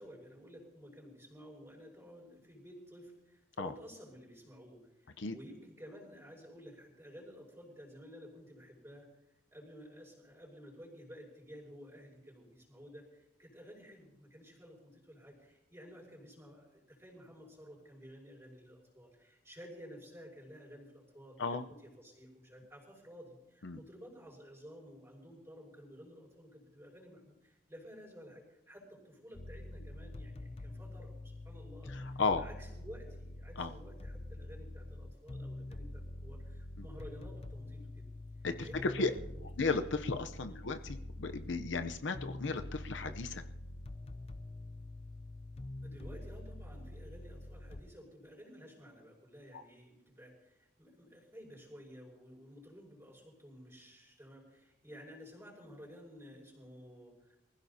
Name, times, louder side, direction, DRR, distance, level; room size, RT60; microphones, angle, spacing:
voice 1, 0.0-9.1 9.5-38.0 38.6-39.4 40.4-40.6 45.8-57.4, equal, 15° right, -3 dB, 5.6 m, -53 dB
sound 1, 29.3-47.8, left 1 dB, 30° left, 0.5 m, -46 dB
voice 2, 31.9-32.4 33.6-33.7 36.8-36.9 38.4-39.1 39.6-43.4, left 4 dB, 70° left, 8 dB, 0.7 m, -34 dB
24.5 x 15.5 x 2.8 m, 0.92 s
head